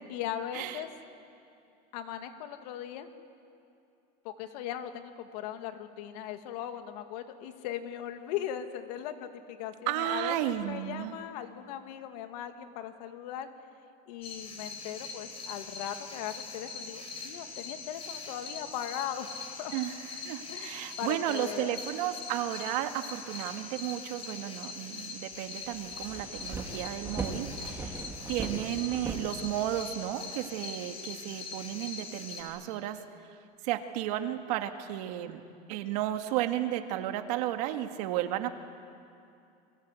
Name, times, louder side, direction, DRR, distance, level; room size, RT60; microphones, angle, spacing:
voice 1, 0.1-0.9 1.9-3.1 4.2-13.5 14.1-19.7 20.5-21.8, left 10 dB, 70° left, 7 dB, 2.1 m, -39 dB
voice 2, 9.9-11.2 19.7-33.0 33.6-35.4 35.7-38.5, right 12 dB, 70° right, 7 dB, 1.9 m, -33 dB
sound 1, 14.2-32.4, left 4 dB, 25° left, 4.3 m, -42 dB
sound 2, 25.3-25.4 25.7-30.0, right 3 dB, 10° right, 2.3 m, -39 dB
29.5 x 23.0 x 8.3 m, 2.5 s
cardioid pair, 175°, 21 cm